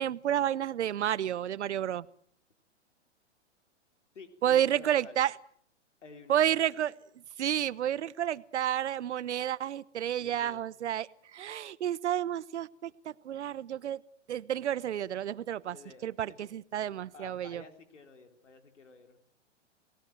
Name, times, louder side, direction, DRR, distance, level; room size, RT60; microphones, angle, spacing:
voice 1, 0.0-2.1 4.4-5.3 6.3-6.9 7.4-12.9 13.2-14.0 14.3-15.8 16.0-17.6, right 10 dB, 70° right, 20 dB, 1.0 m, -30 dB
voice 2, 4.1-5.2 6.0-6.7 10.2-10.7 15.7-16.5 17.1-19.2, left 4 dB, 80° left, 8 dB, 3.8 m, -51 dB
28.5 x 19.5 x 7.7 m, 0.62 s
hypercardioid pair, 115°, 36 cm